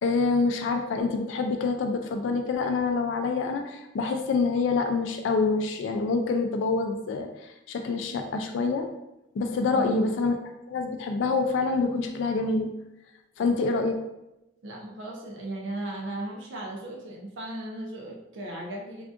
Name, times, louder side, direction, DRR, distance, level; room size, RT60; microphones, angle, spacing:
voice 1, 0.0-8.9 9.3-10.4 10.7-12.7 13.4-14.0, left 4 dB, 80° left, 5 dB, 0.3 m, -26 dB
voice 2, 14.6-19.1, right 1 dB, 75° right, 0 dB, 0.5 m, -36 dB
3.6 x 2.4 x 2.4 m, 0.91 s
head